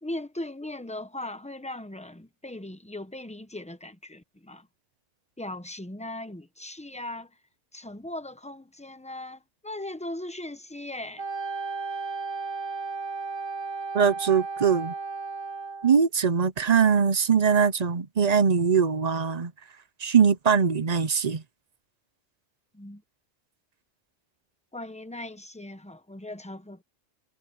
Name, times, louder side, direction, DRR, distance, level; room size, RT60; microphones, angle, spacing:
voice 1, 0.0-4.7 5.4-7.4 7.7-11.2 22.7-23.0 24.7-26.8, left 1 dB, 5° left, 0.9 m, -38 dB
Wind instrument woodwind instrument, 11.2-16.0, right 4 dB, 85° right, 3.1 m, -34 dB
voice 2, 13.9-14.9 15.8-19.5 20.0-21.4, right 6 dB, 40° right, 0.7 m, -22 dB
omnidirectional pair, 1.3 m